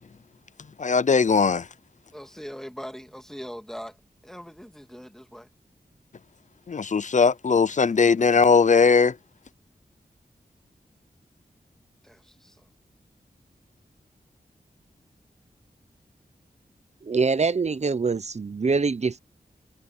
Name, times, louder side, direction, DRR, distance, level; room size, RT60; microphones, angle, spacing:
voice 1, 0.8-1.6 6.7-9.1, left 5 dB, 50° left, 0.6 m, -19 dB
voice 2, 2.1-4.0 4.2-5.5 12.0-12.7, equal, 5° left, 2.2 m, -41 dB
voice 3, 17.0-19.2, right 4 dB, 45° right, 0.7 m, -24 dB
wide cardioid pair, 85°, 16 cm